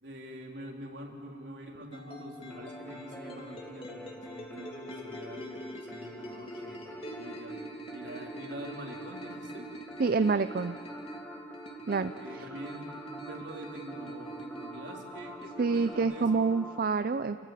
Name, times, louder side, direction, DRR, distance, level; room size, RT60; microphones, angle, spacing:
voice 1, 0.0-7.6 7.9-9.7 12.2-16.5, equal, 75° right, 0 dB, 3.6 m, -45 dB
sound 1, 1.9-15.9, right 1 dB, 35° left, 2.8 m, -44 dB
sound 2, 2.5-16.8, left 1 dB, 10° left, 1.8 m, -47 dB
voice 2, 10.0-10.7 11.9-12.1 15.6-17.4, right 4 dB, 55° right, 11 dB, 0.5 m, -27 dB
29.5 x 15.0 x 9.1 m, 2.3 s
head